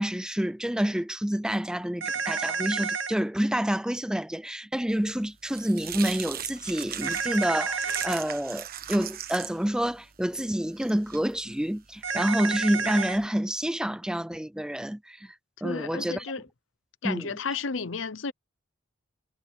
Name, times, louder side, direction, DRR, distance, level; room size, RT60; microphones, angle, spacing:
voice 1, 0.0-15.3 15.6-16.3 17.0-17.3, equal, 5° right, 0.5 m, -28 dB
sound 1, 2.0-3.1 7.0-8.2 12.0-13.2, right 5 dB, 75° right, 1.3 m, -30 dB
sound 2, 5.0-13.3, right 10 dB, 50° right, 1.4 m, -40 dB
voice 2, 15.6-16.4 17.0-18.3, left 5 dB, 75° left, 0.8 m, -32 dB
head